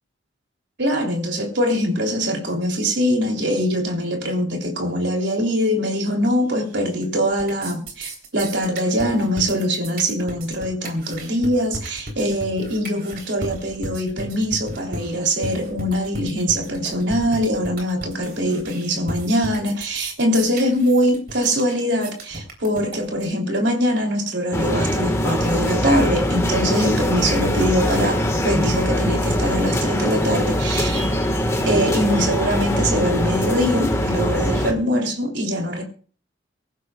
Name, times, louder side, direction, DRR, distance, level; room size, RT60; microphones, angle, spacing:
voice 1, 0.8-31.1 31.7-35.8, equal, 65° right, 3.2 m, -22 dB
sound 1, 6.6-7.1 7.3-23.3, right 1 dB, 50° right, 3.7 m, -35 dB
sound 2, 24.5-34.7, equal, 15° left, 1.6 m, -22 dB
24.0 x 14.5 x 2.4 m
head